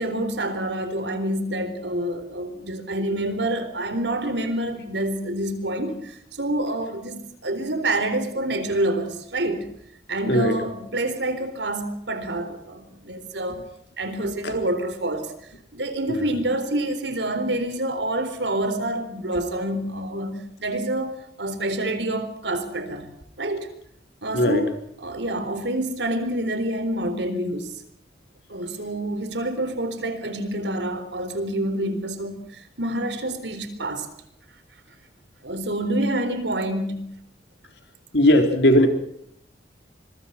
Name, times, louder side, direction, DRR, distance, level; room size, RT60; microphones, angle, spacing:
voice 1, 0.0-9.7 10.1-13.6 14.0-15.3 15.7-23.1 23.4-23.7 24.2-24.7 25.0-27.7 28.5-34.1 35.4-37.2, right 1 dB, 80° right, 4.2 m, -27 dB
voice 2, 24.3-24.7 38.1-38.9, left 1 dB, 70° left, 4.0 m, -18 dB
26.0 x 23.0 x 5.9 m
head